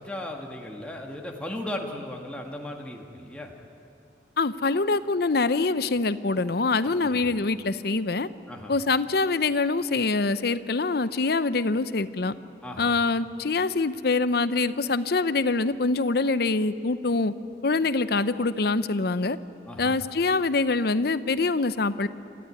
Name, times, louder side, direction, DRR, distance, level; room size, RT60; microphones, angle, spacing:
voice 1, 0.0-3.5 6.8-7.4 8.5-8.7 12.6-13.0 19.6-20.0, left 1 dB, 5° left, 0 dB, 1.7 m, -37 dB
voice 2, 4.4-8.3 8.7-12.3 12.8-17.3 17.6-19.4 19.8-22.1, left 3 dB, 60° left, 14 dB, 0.7 m, -24 dB
27.5 x 14.5 x 9.8 m, 2.7 s
head